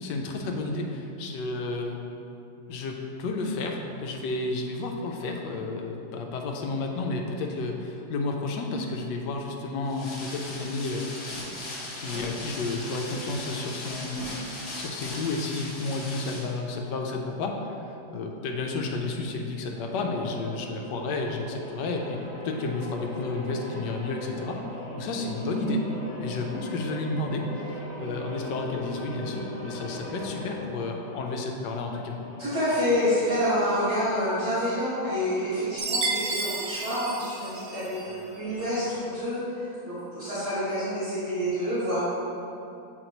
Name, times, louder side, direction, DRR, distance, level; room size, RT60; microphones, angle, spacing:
voice 1, 0.0-2.0 2.7-11.1 12.0-14.2 14.7-22.2 22.4-24.6 25.0-25.8 26.2-32.2, left 3 dB, 80° left, 2 dB, 1.2 m, -31 dB
sound 1, 9.9-16.6, left 2 dB, 55° left, 1.5 m, -38 dB
sound 2, 19.7-31.4 32.1-39.2, equal, 20° left, 0.8 m, -41 dB
voice 2, 32.4-42.1, equal, 65° right, -14 dB, 2.2 m, -28 dB
Chime, 35.8-38.1, right 3 dB, 85° right, 0.6 m, -31 dB
7.7 x 4.2 x 3.0 m, 2.7 s
omnidirectional pair, 1.9 m